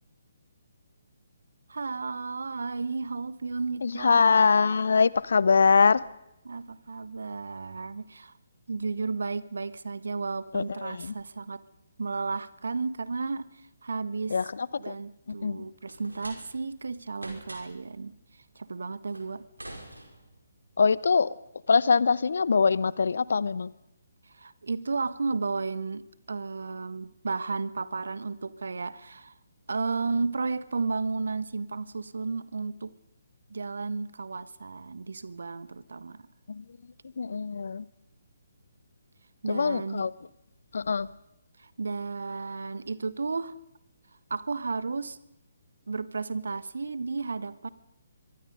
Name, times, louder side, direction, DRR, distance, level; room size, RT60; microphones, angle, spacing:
voice 1, 1.7-4.2 6.4-8.3 8.7-11.6 12.0-14.3 14.8-18.2 18.5-19.4 24.3-29.3 29.7-32.9 33.5-36.3 39.4-40.1 41.6-43.6 44.3-45.2 45.9-47.7, right 4 dB, 60° right, 16 dB, 1.4 m, -33 dB
voice 2, 3.8-6.0 10.5-11.1 14.3-14.9 15.4-15.7 20.8-21.3 21.7-23.7 36.5-36.6 37.2-37.9 39.5-40.1 40.7-41.1, left 5 dB, 55° left, 20 dB, 0.9 m, -23 dB
sound 1, 15.9-16.8 17.1-17.9 19.1-20.5, right 1 dB, 80° right, 5.0 m, -45 dB
24.5 x 23.5 x 5.4 m, 0.85 s
figure-of-eight pair, 135°, 0 cm